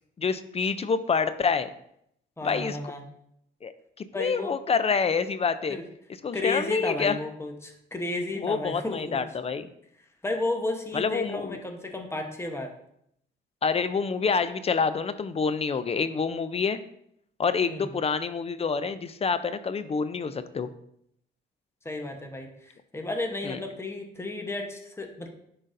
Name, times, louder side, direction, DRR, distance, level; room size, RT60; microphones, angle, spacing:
voice 1, 0.2-1.7 2.4-2.8 3.6-3.7 4.0-5.8 6.2-7.2 8.4-9.7 10.9-11.6 13.6-16.8 17.4-20.7 23.4-23.6, left 5 dB, 30° left, 12 dB, 0.4 m, -27 dB
voice 2, 2.4-3.0 4.1-4.5 5.7-5.8 6.3-9.2 10.2-12.7 17.6-17.9 21.8-25.3, left 2 dB, 15° left, 3 dB, 1.0 m, -33 dB
9.9 x 3.9 x 2.6 m, 0.74 s
cardioid pair, 90°, 20 cm